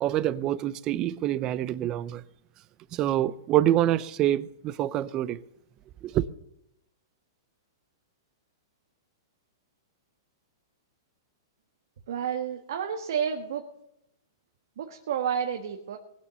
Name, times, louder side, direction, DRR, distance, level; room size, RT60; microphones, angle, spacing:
voice 1, 0.0-2.2 2.9-5.4 6.0-6.2, right 13 dB, 30° right, 0.6 m, -26 dB
voice 2, 12.1-13.7 14.8-16.0, right 8 dB, 70° right, 1.5 m, -30 dB
19.5 x 7.2 x 6.9 m
hypercardioid pair, 145°, 2 cm